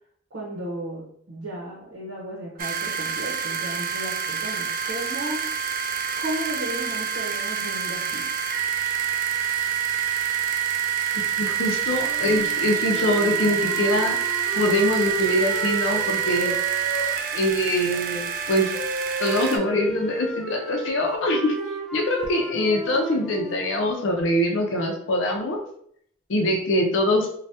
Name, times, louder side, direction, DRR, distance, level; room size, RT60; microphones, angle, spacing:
voice 1, 0.3-5.7 6.1-8.6 8.9-9.7 21.6-21.7, right 1 dB, 70° right, -3 dB, 0.8 m, -35 dB
sound 1, 2.6-19.6, right 9 dB, 45° right, 0.4 m, -27 dB
voice 2, 11.4-14.2 14.5-16.6 17.3-18.7 19.2-21.5 21.9-25.6 26.3-27.3, left 1 dB, 85° left, 2 dB, 0.5 m, -23 dB
Wind instrument woodwind instrument, 12.0-17.4 17.9-23.8, right 2 dB, ahead, 1.3 m, -34 dB
3.3 x 2.2 x 2.7 m, 0.66 s
head